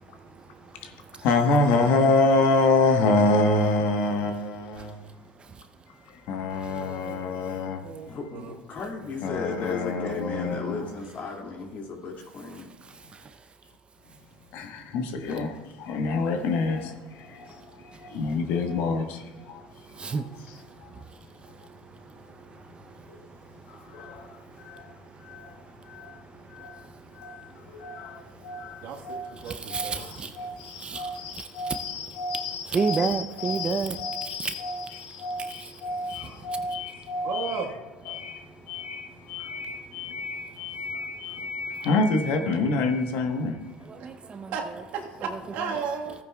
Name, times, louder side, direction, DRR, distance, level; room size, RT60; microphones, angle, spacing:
voice 1, 0.2-1.2 4.8-4.9 5.4-5.6 12.8-13.3 17.6-18.0 19.9-20.7 20.9-21.0 21.5-28.4 28.8-28.9 29.4-31.8 32.7-34.0 34.2-34.5 35.0-35.8 36.1-36.3 43.9-44.5 45.3-45.4, right 5 dB, 30° right, 0.6 m, -35 dB
voice 2, 1.2-5.0 6.1-8.1 9.2-10.8 14.5-19.7 20.5-20.6 20.8-20.9 23.1-23.2 23.7-24.9 25.2-25.6 25.9-26.2 26.5-26.9 27.1-29.3 29.7-37.7 38.1-43.7, left 3 dB, 65° left, 1.2 m, -27 dB
voice 3, 6.7-8.5 28.8-30.1 37.2-37.7 44.5-46.2, right 5 dB, 65° right, 1.5 m, -35 dB
voice 4, 8.1-12.7, left 4 dB, 50° left, 2.4 m, -35 dB
15.5 x 9.3 x 2.3 m
hypercardioid pair, 80°, 4 cm